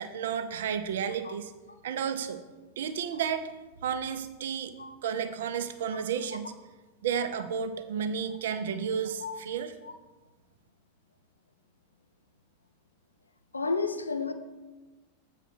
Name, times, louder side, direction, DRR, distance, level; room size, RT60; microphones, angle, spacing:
voice 1, 0.0-1.5 1.8-2.4 2.8-3.5 3.8-4.8 5.0-6.5 7.0-9.7, right 7 dB, 60° right, 9 dB, 0.5 m, -32 dB
voice 2, 13.5-14.3, left 4 dB, 80° left, 9 dB, 0.5 m, -31 dB
8.0 x 4.1 x 6.0 m, 1.2 s
figure-of-eight pair, 90°, 0 cm